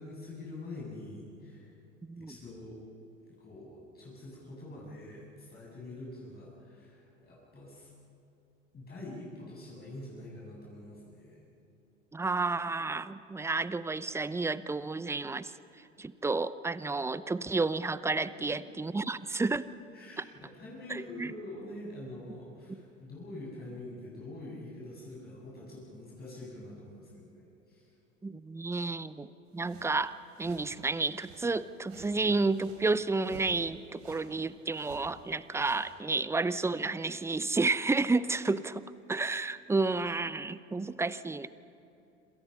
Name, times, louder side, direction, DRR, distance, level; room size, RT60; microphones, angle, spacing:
voice 1, 0.0-1.7 2.1-2.8 3.4-7.9 8.7-11.4 18.4-18.5 19.9-27.8, left 1 dB, 25° left, -5 dB, 7.9 m, -45 dB
voice 2, 12.1-15.5 16.0-19.7 20.2-20.3 20.9-21.3 28.2-38.8 39.1-41.5, right 3 dB, 5° right, 16 dB, 0.7 m, -31 dB
sound 1, 29.6-35.9, right 4 dB, 60° right, 5.7 m, -54 dB
27.5 x 27.0 x 5.8 m, 2.8 s
figure-of-eight pair, 80°, 37 cm